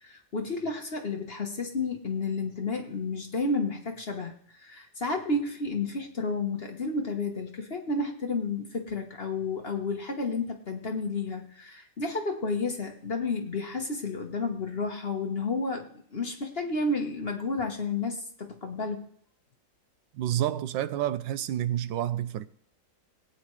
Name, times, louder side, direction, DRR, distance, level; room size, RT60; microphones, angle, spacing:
voice 1, 0.0-19.1, left 3 dB, 40° left, 1.1 m, -31 dB
voice 2, 20.1-22.5, right 12 dB, 85° right, 1.3 m, -29 dB
18.5 x 9.4 x 3.2 m
omnidirectional pair, 2.0 m